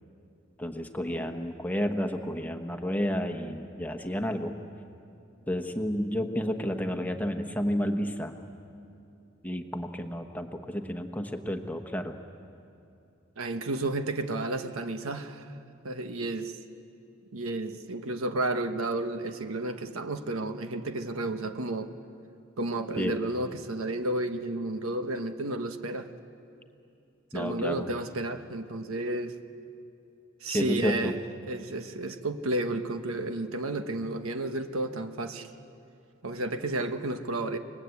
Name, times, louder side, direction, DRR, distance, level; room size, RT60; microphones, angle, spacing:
voice 1, 0.6-4.5 5.5-8.3 9.4-12.1 23.0-23.2 27.3-27.9 30.5-31.1, equal, 10° left, 6 dB, 1.1 m, -31 dB
voice 2, 13.4-15.5 15.8-16.5 17.3-21.9 22.6-26.1 27.3-29.3 30.4-31.2 31.4-35.5 36.2-37.6, right 2 dB, 85° right, 8 dB, 1.2 m, -32 dB
29.0 x 20.0 x 8.5 m, 2.7 s
head